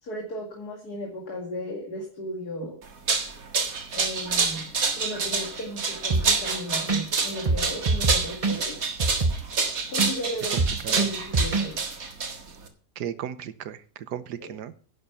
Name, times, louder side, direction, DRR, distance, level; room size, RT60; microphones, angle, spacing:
voice 1, 0.0-2.8 3.9-4.7 5.0-8.8 9.9-11.8 14.4-14.5, equal, 70° left, 1 dB, 2.7 m, -35 dB
sound 1, 2.8-12.7, right 4 dB, 60° right, 2.1 m, -27 dB
sound 2, 6.1-6.5 6.9-7.0 7.3-10.1 10.4-11.7 11.9-12.0, right 3 dB, 30° right, 0.8 m, -24 dB
voice 2, 10.5-11.1 13.0-14.7, right 10 dB, 85° right, 14 dB, 1.4 m, -35 dB
11.0 x 7.9 x 7.1 m, 0.42 s
omnidirectional pair, 1.7 m